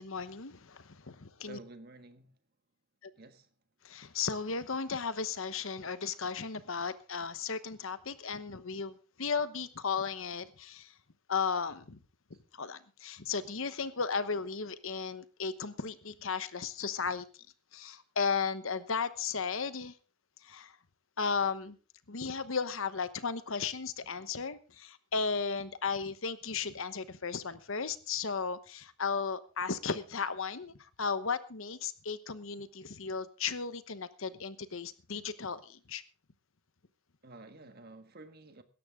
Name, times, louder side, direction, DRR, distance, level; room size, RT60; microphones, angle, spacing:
voice 1, 0.0-1.6 3.0-3.1 3.8-10.9 11.3-12.0 12.3-17.3 17.7-20.0 20.4-20.8 21.2-21.8 22.1-36.0, left 5 dB, 65° left, 1.0 m, -35 dB
voice 2, 1.4-2.3 3.2-3.5 37.2-38.6, right 2 dB, 45° right, 1.5 m, -51 dB
17.5 x 13.0 x 3.6 m
head